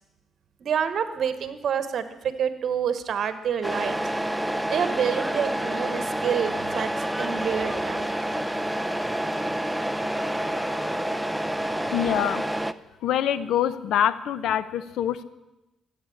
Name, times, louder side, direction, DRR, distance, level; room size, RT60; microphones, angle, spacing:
voice 1, 0.6-4.0 4.7-6.9 7.2-8.2, right 8 dB, 60° right, 11 dB, 1.3 m, -27 dB
Truck, 3.6-12.7, right 1 dB, 5° right, 0.6 m, -28 dB
voice 2, 11.9-12.5 13.0-15.2, left 10 dB, 80° left, 15 dB, 0.8 m, -25 dB
14.5 x 8.8 x 8.6 m, 0.99 s
cardioid pair, 90°, 0 cm